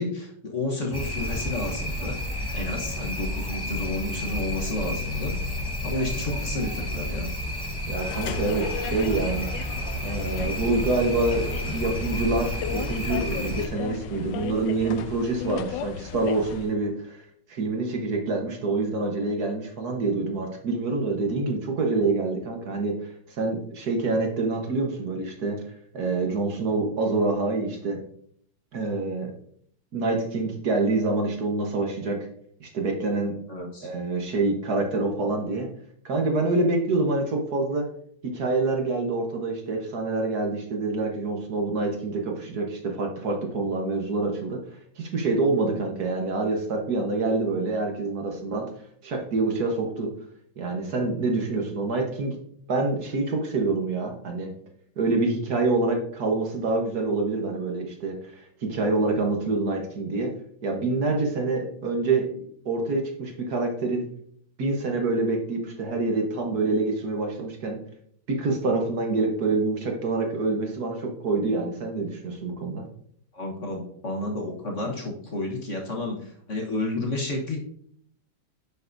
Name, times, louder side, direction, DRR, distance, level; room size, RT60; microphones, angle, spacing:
voice 1, 0.0-2.2 2.5-5.3 5.8-7.3 33.5-33.9 73.3-77.6, left 2 dB, 45° left, 0 dB, 1.4 m, -31 dB
sound 1, 0.9-13.7, left 1 dB, 20° left, 0.8 m, -31 dB
sound 2, 7.9-16.8, left 7 dB, 75° left, 1.2 m, -35 dB
voice 2, 7.9-9.7 10.0-17.2 17.5-25.6 25.9-28.0 28.7-29.3 29.9-32.2 32.6-33.3 33.8-35.7 36.0-37.8 38.2-44.6 45.0-48.7 49.0-50.1 50.6-52.4 52.7-54.5 55.0-60.3 60.6-64.0 64.6-67.8 68.3-72.8, right 3 dB, 55° right, 2 dB, 1.7 m, -26 dB
10.0 x 6.8 x 2.7 m, 0.65 s
omnidirectional pair, 2.1 m